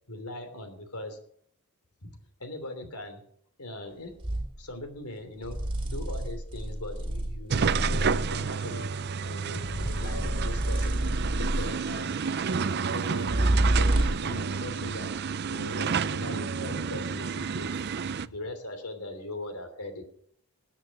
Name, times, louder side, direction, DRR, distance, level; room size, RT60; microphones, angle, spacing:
voice 1, 0.1-1.2 2.0-3.2 3.6-5.6 5.8-8.9 9.2-11.0 11.4-12.2 12.9-15.1 15.5-17.7 18.2-20.1, left 1 dB, 80° left, 7 dB, 3.1 m, -40 dB
sound 1, 4.2-4.5 5.4-8.4 9.6-11.9 13.2-14.4, right 1 dB, 25° right, 2.1 m, -28 dB
sound 2, 7.5-18.3, right 6 dB, 45° right, 0.5 m, -30 dB
21.0 x 7.5 x 6.2 m, 0.65 s
head